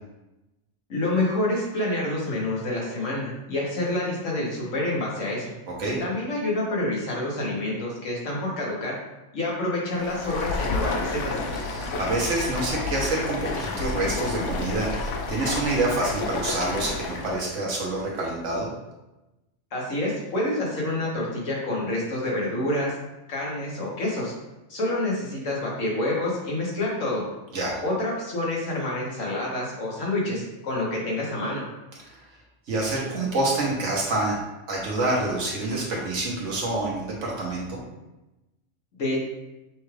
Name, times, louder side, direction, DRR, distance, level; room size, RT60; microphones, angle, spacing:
voice 1, 0.9-5.5 6.0-8.9 9.3-11.4 19.7-22.9 23.3-24.3 24.7-27.2 27.8-31.6 39.0-39.2, left 1 dB, 90° left, -4 dB, 1.6 m, -27 dB
Stream, 9.9-17.5, left 3 dB, 75° left, 0.9 m, -30 dB
voice 2, 11.7-18.7 27.5-27.7 32.7-34.4 34.7-37.8, right 2 dB, 75° right, -3 dB, 1.4 m, -27 dB
6.2 x 2.4 x 3.2 m, 1.0 s
omnidirectional pair, 1.3 m